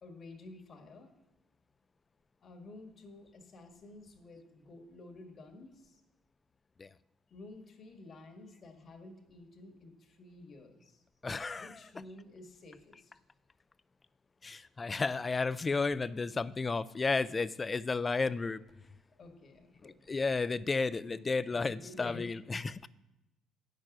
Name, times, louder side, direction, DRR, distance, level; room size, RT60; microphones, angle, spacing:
voice 1, 0.0-1.1 2.4-6.0 7.3-11.0 11.6-13.1 19.2-19.9 21.5-22.3, left 2 dB, 50° left, 3 dB, 1.7 m, -51 dB
voice 2, 11.2-11.9 14.4-18.6 19.8-22.8, left 4 dB, 25° left, 17 dB, 0.4 m, -33 dB
9.0 x 6.6 x 6.0 m, 0.96 s
cardioid pair, 85°, 0 cm